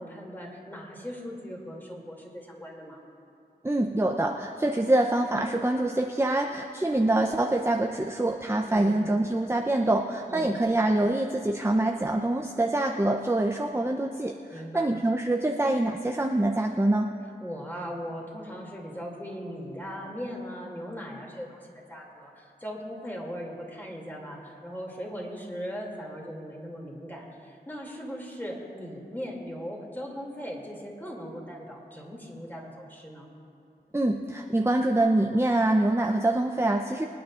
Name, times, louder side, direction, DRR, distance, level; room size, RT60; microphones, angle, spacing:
voice 1, 0.0-3.0 8.6-9.2 10.3-10.6 14.5-14.9 17.4-33.3, equal, 10° left, -2 dB, 2.7 m, -39 dB
voice 2, 3.6-17.1 33.9-37.1, right 1 dB, 15° right, 2 dB, 0.7 m, -25 dB
26.0 x 9.4 x 2.5 m, 2.7 s
wide cardioid pair, 50°, 17 cm